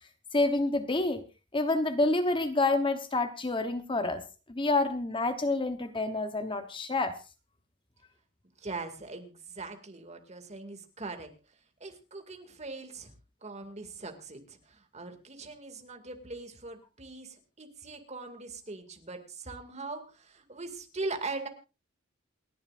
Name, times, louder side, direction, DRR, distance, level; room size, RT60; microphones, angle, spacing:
voice 1, 0.3-1.2 1.5-4.2 4.5-7.1, left 2 dB, 25° left, 9 dB, 1.0 m, -28 dB
voice 2, 8.6-11.3 11.8-13.1 13.4-21.5, right 3 dB, 35° right, 6 dB, 2.3 m, -41 dB
28.5 x 11.0 x 2.5 m, 0.30 s
head